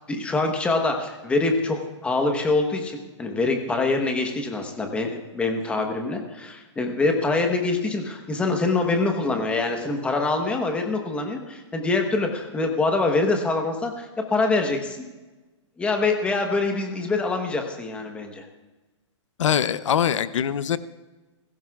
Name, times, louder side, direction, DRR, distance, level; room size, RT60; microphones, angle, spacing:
voice 1, 0.1-15.0 15.8-18.4, left 3 dB, 5° left, 3 dB, 1.1 m, -25 dB
voice 2, 19.4-20.8, left 9 dB, 75° left, 14 dB, 0.7 m, -22 dB
21.0 x 15.5 x 2.4 m, 1.2 s
hypercardioid pair, 165°, 16 cm